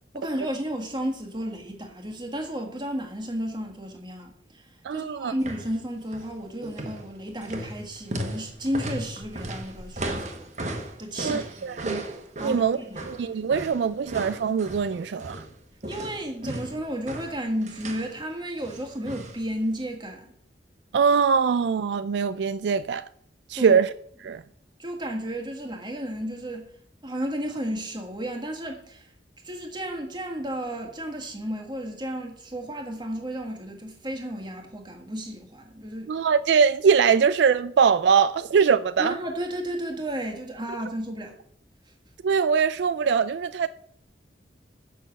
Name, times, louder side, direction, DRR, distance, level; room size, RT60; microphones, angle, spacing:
voice 1, 0.1-4.6 4.9-10.5 11.0-11.8 12.4-13.1 15.9-20.3 23.5-23.8 24.3-24.4 24.8-26.7 27.0-29.1 29.4-36.1 39.0-41.4, equal, 25° right, 1.5 m, -33 dB
voice 2, 4.8-5.3 11.2-12.0 12.4-12.8 13.1-15.4 20.9-23.0 23.5-23.9 24.2-24.4 36.1-39.2 42.2-43.7, right 6 dB, 70° right, 0.3 m, -22 dB
sound 1, 5.4-5.7 6.0-6.3 6.6-15.5 15.8-18.1 18.6-19.4 19.7-19.8, right 1 dB, 40° right, 1.2 m, -36 dB
6.9 x 6.0 x 7.1 m
head